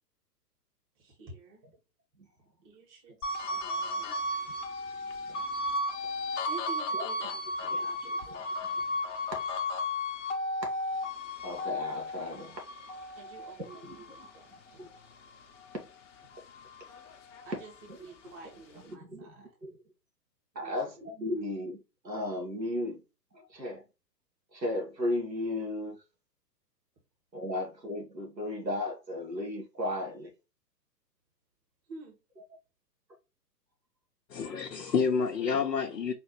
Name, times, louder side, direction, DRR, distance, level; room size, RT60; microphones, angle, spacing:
voice 1, 1.0-1.6 2.6-4.2 6.5-7.3 7.6-8.2 13.2-14.4 14.7-15.0 17.4-17.7 18.0-19.5 20.5-20.8 31.9-32.1 34.8-34.9, right 3 dB, 25° right, 2.0 m, -49 dB
sound 1, 3.2-15.8 16.2-17.9, left 2 dB, 45° left, 1.0 m, -35 dB
voice 2, 11.4-12.6 13.8-14.0 14.8-14.9 18.9-19.3 19.6-19.8 20.5-21.8 22.0-23.0 23.3-23.8 24.5-26.0 27.3-30.3, left 1 dB, 90° right, 1.7 m, -35 dB
voice 3, 34.3-36.1, left 6 dB, 70° left, 0.9 m, -29 dB
4.9 x 3.4 x 3.1 m
figure-of-eight pair, 115°, 50 cm